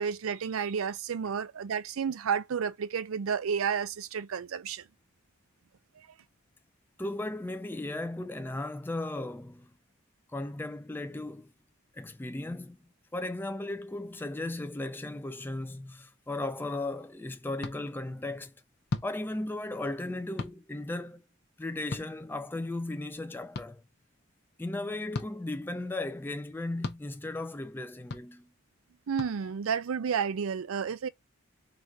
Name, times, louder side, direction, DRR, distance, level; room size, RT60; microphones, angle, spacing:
voice 1, 0.0-4.8 29.1-31.1, right 7 dB, 80° right, 0.4 m, -31 dB
voice 2, 7.0-9.7 10.3-11.5 11.9-12.8 13.1-18.5 19.0-21.2 21.6-23.8 24.6-28.5, left 2 dB, 10° left, 0.3 m, -36 dB
sound 1, 17.6-17.8 18.9-19.1 20.4-20.6 21.9-22.1 23.5-23.7 25.1-25.3 26.8-27.0 28.1-28.2 29.2-29.3, left 3 dB, 50° left, 0.6 m, -35 dB
3.9 x 2.5 x 4.5 m
head